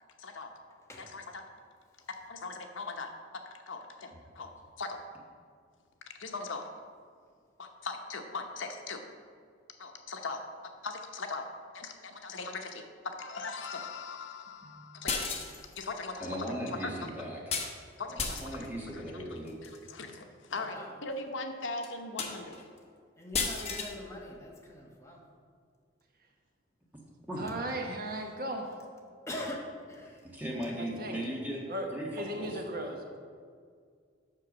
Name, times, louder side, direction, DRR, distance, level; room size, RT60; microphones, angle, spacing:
voice 1, 0.2-0.5 1.0-1.4 2.1-3.1 3.7-4.5 4.8-5.0 6.1-6.6 7.6-9.0 9.8-10.4 10.8-11.5 11.7-12.8 13.1-15.3 15.8-17.0 18.0-18.5 18.9-19.2 19.6-22.6, left 3 dB, 80° left, 5 dB, 0.9 m, -40 dB
voice 2, 14.6-15.0 20.6-20.9 23.2-25.2 28.1-28.2 29.3-30.2, left 1 dB, 15° left, -1 dB, 1.1 m, -43 dB
sound 1, 15.1-15.9 17.5-17.7 18.2-18.7 19.5-19.8 20.6-20.7 21.1-21.2 21.8-21.9 22.2-22.6 23.3-23.9, left 5 dB, 35° left, 0.9 m, -33 dB
voice 3, 16.2-17.5 18.1-19.6 27.3-27.5 30.2-31.6 31.9-32.6, equal, 10° right, -3 dB, 1.5 m, -37 dB
voice 4, 27.4-28.7 31.0-31.2 31.7-33.0, right 1 dB, 50° right, 2 dB, 1.0 m, -36 dB
7.7 x 6.1 x 6.1 m, 2.1 s
head